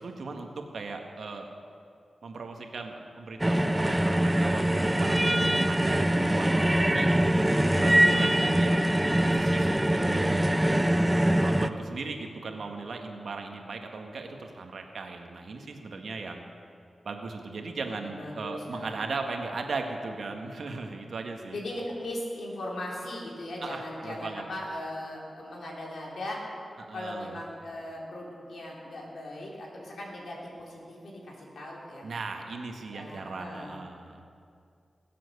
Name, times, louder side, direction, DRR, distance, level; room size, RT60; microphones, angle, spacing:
voice 1, 0.0-1.5 2.2-7.1 7.8-8.8 9.2-10.5 11.4-16.4 17.0-21.6 23.6-24.4 26.8-27.4 32.0-34.2, right 3 dB, 75° right, 3 dB, 1.6 m, -37 dB
sound 1, 3.4-11.7, right 1 dB, 15° right, 0.6 m, -23 dB
voice 2, 18.0-18.9 21.5-26.4 26.9-32.1 32.9-33.8, left 1 dB, 80° left, -3 dB, 3.5 m, -38 dB
21.0 x 7.7 x 6.7 m, 2.4 s
cardioid pair, 55°, 0 cm